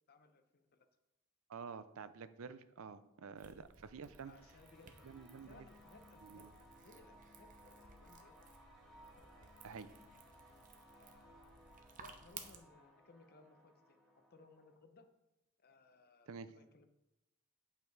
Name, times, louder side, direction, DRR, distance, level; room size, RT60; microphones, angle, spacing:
voice 1, 0.1-0.9 3.3-3.6 4.2-5.1 5.5-6.5 6.8-8.4 9.2-9.7 10.9-11.5 12.0-15.1 15.6-16.9, left 3 dB, 45° left, 8 dB, 0.7 m, -64 dB
voice 2, 1.5-4.3 5.0-5.6 6.2-6.5 9.6-9.9 16.3-16.5, right 5 dB, 65° right, 13 dB, 0.5 m, -49 dB
sound 1, 3.4-12.6, right 6 dB, 35° right, 0.8 m, -58 dB
sound 2, 3.7-14.8, equal, ahead, 1.5 m, -63 dB
8.5 x 5.5 x 4.6 m, 0.91 s
head